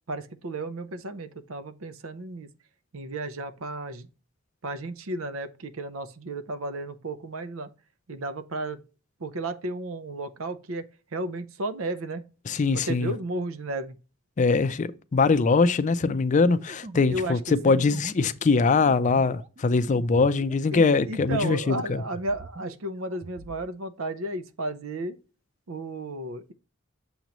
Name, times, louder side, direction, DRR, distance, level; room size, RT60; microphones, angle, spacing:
voice 1, 0.0-2.5 2.9-4.1 4.6-7.7 8.1-8.8 9.2-12.2 12.8-14.0 17.1-17.8 20.7-25.2 25.7-26.5, right 2 dB, 90° right, 0.7 m, -33 dB
voice 2, 12.5-13.1 14.4-22.0, left 4 dB, 35° left, 0.4 m, -22 dB
sound 1, 16.0-21.8 22.0-23.6, right 3 dB, 35° right, 0.4 m, -43 dB
7.0 x 3.0 x 5.1 m
head